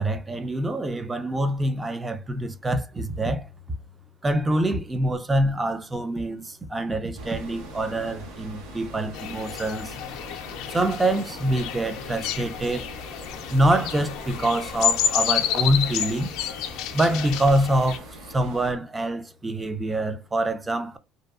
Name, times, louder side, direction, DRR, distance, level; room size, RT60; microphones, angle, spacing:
voice 1, 0.0-3.5 4.2-9.9 10.7-12.9 13.5-16.3 16.9-21.0, right 1 dB, 15° right, 0.3 m, -25 dB
sound 1, 7.2-18.7, equal, 90° right, 0.9 m, -42 dB
sound 2, 9.1-18.0, left 9 dB, 70° left, 0.4 m, -30 dB
2.6 x 2.2 x 2.3 m
cardioid pair, 135°, 0 cm